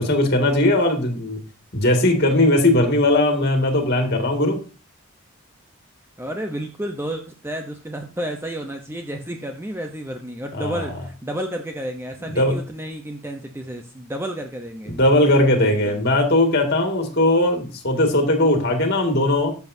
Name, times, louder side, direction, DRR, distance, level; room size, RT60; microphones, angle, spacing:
voice 1, 0.0-1.4 1.7-4.6 10.5-10.9 12.3-12.6 14.9-19.5, left 1 dB, 50° left, 4 dB, 2.2 m, -19 dB
voice 2, 6.2-14.9 15.6-16.0, right 1 dB, 10° right, 4 dB, 0.7 m, -31 dB
13.5 x 7.1 x 2.7 m, 0.36 s
head